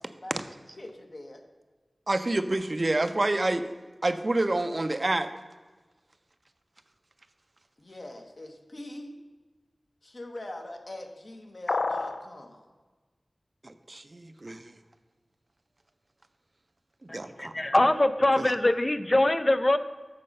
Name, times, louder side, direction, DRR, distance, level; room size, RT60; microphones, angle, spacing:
voice 1, 0.8-1.4 7.8-9.1 10.0-12.7, left 1 dB, 50° left, 4 dB, 1.0 m, -42 dB
voice 2, 2.1-3.6 4.0-5.3 13.6-14.7 17.1-17.5, right 2 dB, 40° right, 10 dB, 0.5 m, -28 dB
sound 1, 11.7-12.3, left 3 dB, 85° left, 0.5 m, -28 dB
voice 3, 17.1-19.8, left 1 dB, 30° left, 12 dB, 0.5 m, -23 dB
7.6 x 6.4 x 5.3 m, 1.3 s
wide cardioid pair, 75°, 0 cm